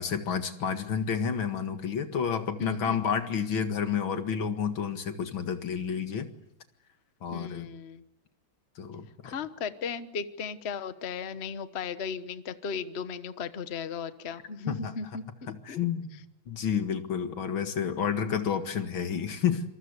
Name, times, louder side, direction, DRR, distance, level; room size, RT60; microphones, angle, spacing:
voice 1, 0.0-6.3 7.2-7.7 8.8-9.3 14.7-14.9 15.5-16.2 16.5-19.6, left 7 dB, 75° left, 8 dB, 2.6 m, -30 dB
voice 2, 2.6-3.0 7.3-8.0 9.2-15.8, left 6 dB, 35° left, 11 dB, 1.2 m, -36 dB
27.0 x 26.5 x 8.2 m, 0.81 s
omnidirectional pair, 2.2 m